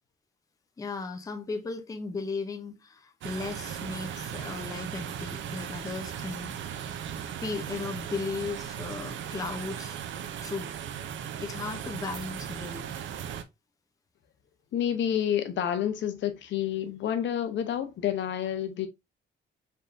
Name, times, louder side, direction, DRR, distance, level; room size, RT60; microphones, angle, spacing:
voice 1, 0.8-6.5 6.8-6.9 7.4-10.7 11.4-12.9, left 4 dB, 20° left, 0.5 m, -36 dB
sound 1, 3.2-13.4, right 9 dB, 80° right, 0.6 m, -37 dB
voice 2, 14.7-18.9, left 10 dB, 70° left, 0.8 m, -29 dB
4.3 x 3.5 x 2.5 m
cardioid pair, 150°, 19 cm